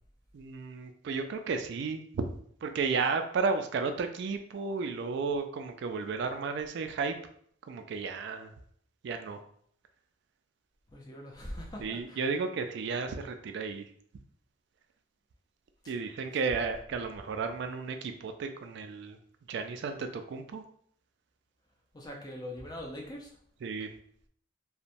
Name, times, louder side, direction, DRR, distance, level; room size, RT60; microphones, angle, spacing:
voice 1, 0.3-2.3 2.6-7.1 7.7-8.5 9.0-9.4 11.8-13.9 15.9-19.2 19.5-20.6 23.6-23.9, right 4 dB, 60° right, 7 dB, 0.3 m, -33 dB
voice 2, 10.9-12.3 21.9-23.3, left 1 dB, 20° left, -1 dB, 0.5 m, -42 dB
2.9 x 2.1 x 2.5 m, 0.63 s
head